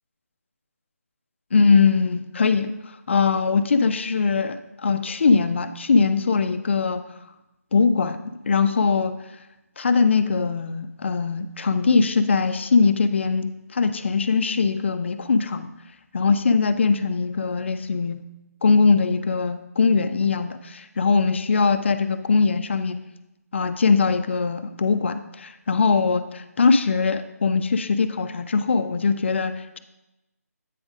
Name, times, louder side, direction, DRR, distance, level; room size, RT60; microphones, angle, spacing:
voice 1, 1.5-2.7 3.1-7.0 7.7-9.1 9.8-15.7 16.1-18.2 18.6-23.0 23.5-29.8, left 4 dB, 45° left, 10 dB, 0.5 m, -21 dB
8.4 x 5.0 x 3.6 m, 0.95 s
figure-of-eight pair, 160°, 9 cm